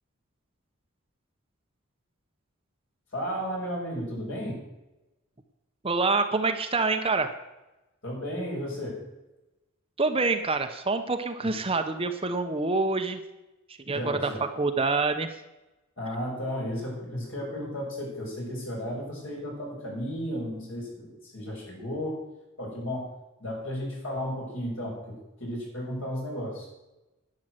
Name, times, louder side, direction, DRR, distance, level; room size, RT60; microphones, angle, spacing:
voice 1, 3.1-4.7 8.0-9.1 11.4-11.5 13.9-14.4 16.0-22.2 22.6-23.1 23.4-26.7, equal, 60° left, -3 dB, 6.5 m, -34 dB
voice 2, 5.8-7.3 10.0-13.2 13.9-15.3, right 3 dB, 25° right, 7 dB, 0.9 m, -26 dB
11.5 x 9.0 x 7.9 m, 1.0 s
head